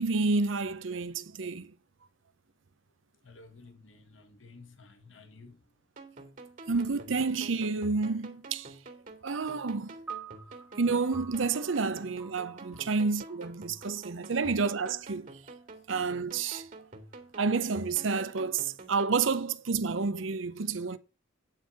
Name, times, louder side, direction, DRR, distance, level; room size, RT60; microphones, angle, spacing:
voice 1, 0.0-1.7 6.7-8.7 9.2-9.9 10.8-15.3 15.9-16.7 17.4-21.0, right 4 dB, 80° right, 0.7 m, -29 dB
voice 2, 3.2-5.6 12.7-12.8 14.3-14.4, left 3 dB, 80° left, 1.6 m, -53 dB
sound 1, 6.0-19.2, right 2 dB, 45° right, 2.1 m, -48 dB
sound 2, 10.1-16.5, right 7 dB, 10° right, 1.1 m, -50 dB
9.1 x 4.5 x 6.9 m
head